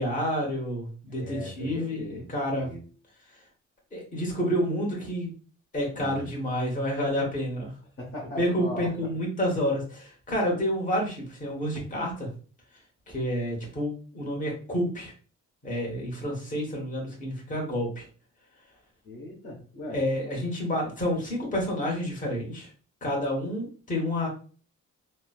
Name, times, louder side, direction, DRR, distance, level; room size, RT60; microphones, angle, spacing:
voice 1, 0.0-2.7 3.9-5.3 5.7-7.7 8.4-12.3 13.1-15.1 15.6-18.0 19.9-22.7 23.0-24.3, equal, 25° left, -1 dB, 1.2 m, -29 dB
voice 2, 1.1-2.2 2.5-2.9 5.9-6.3 8.0-8.9 19.0-20.0, left 1 dB, 45° left, -3 dB, 1.0 m, -39 dB
3.1 x 2.1 x 2.3 m, 0.39 s
cardioid pair, 90°, 30 cm